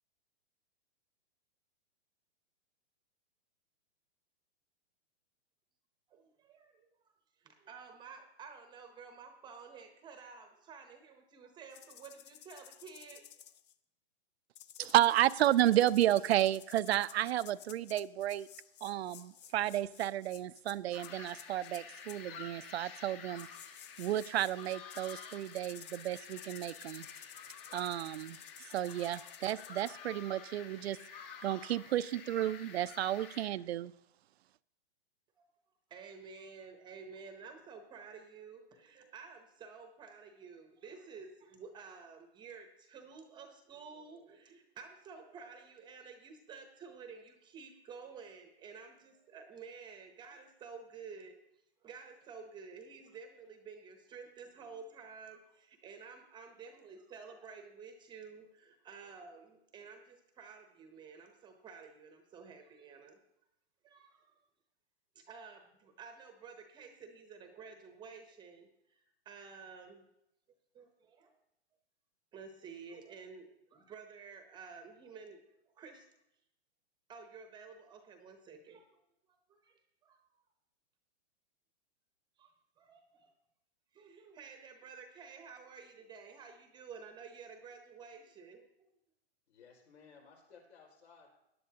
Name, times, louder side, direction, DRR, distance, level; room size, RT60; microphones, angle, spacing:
voice 1, 6.1-7.1 7.4-13.2 35.4-35.5 35.9-51.4 51.8-63.2 63.8-64.4 65.1-70.1 70.7-71.3 72.3-76.1 77.1-78.9 79.5-80.2 82.4-83.3 83.9-88.9, right 5 dB, 15° right, 6 dB, 0.8 m, -52 dB
sound 1, 11.7-13.7 14.5-22.2 23.4-29.9, left 11 dB, 40° left, 0.5 m, -54 dB
voice 2, 14.8-18.5 18.8-23.5 24.0-27.1 27.7-33.9, right 13 dB, 70° right, 16 dB, 0.5 m, -32 dB
sound 2, 20.9-33.5, left 6 dB, 55° left, 2.2 m, -50 dB
voice 3, 89.5-91.3, left 5 dB, 80° left, 0 dB, 5.0 m, -59 dB
18.0 x 11.0 x 2.8 m, 0.83 s
hypercardioid pair, 150°, 33 cm